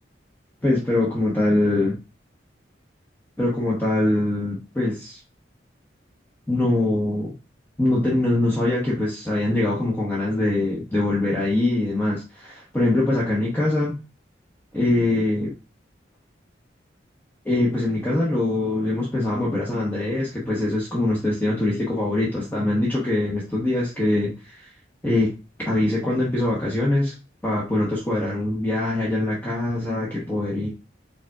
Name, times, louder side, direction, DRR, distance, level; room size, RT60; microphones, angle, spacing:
voice 1, 0.6-1.9 3.4-5.2 6.5-7.3 7.8-13.9 14.7-15.5 17.4-24.7 25.0-25.3 25.6-27.1 27.4-30.7, left 2 dB, 10° left, -5 dB, 1.0 m, -23 dB
5.0 x 4.1 x 2.4 m, 0.31 s
head